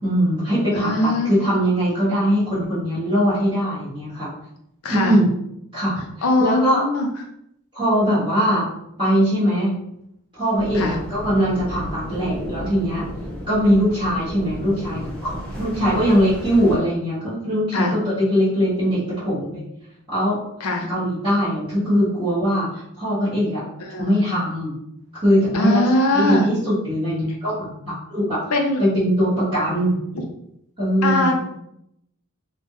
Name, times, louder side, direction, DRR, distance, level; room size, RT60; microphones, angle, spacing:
voice 1, 0.0-4.3 4.9-5.3 5.7-6.0 6.4-6.8 7.7-8.7 9.0-9.7 10.3-13.0 13.5-19.6 20.1-20.4 20.9-23.6 24.0-24.7 25.1-25.8 26.1-28.4 28.8-30.0 30.8-31.3, equal, 20° right, -14 dB, 1.3 m, -21 dB
voice 2, 0.7-1.5 4.8-5.2 6.2-7.1 10.7-11.0 17.7-17.9 20.6-20.9 23.8-24.2 25.5-26.5 28.5-28.8 30.1-30.2 31.0-31.5, left 2 dB, 75° left, 2 dB, 0.7 m, -21 dB
sound 1, 10.5-16.8, equal, 5° left, 0.7 m, -33 dB
3.6 x 2.4 x 3.0 m, 0.77 s
head